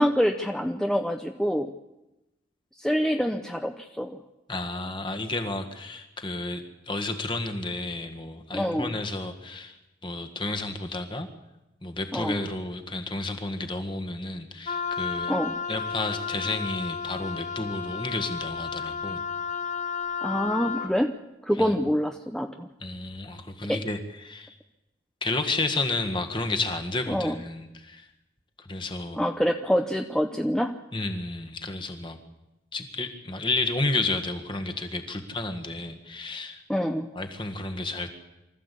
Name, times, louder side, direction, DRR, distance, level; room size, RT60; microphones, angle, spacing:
voice 1, 0.0-1.7 2.8-4.2 8.5-9.0 12.1-12.4 15.3-15.6 20.2-21.2 21.4-22.7 23.7-23.8 27.1-27.4 29.2-30.8 36.7-37.1, equal, 5° left, 5 dB, 0.7 m, -26 dB
voice 2, 4.5-9.8 10.0-11.3 11.8-15.3 15.7-19.2 21.6-21.9 22.8-24.6 25.2-28.1 28.6-29.2 30.9-32.2 32.7-36.6 37.1-38.1, left 2 dB, 25° left, 6 dB, 1.7 m, -31 dB
Wind instrument woodwind instrument, 14.7-20.9, left 6 dB, 45° left, 1.6 m, -32 dB
24.5 x 14.5 x 8.4 m, 1.0 s
head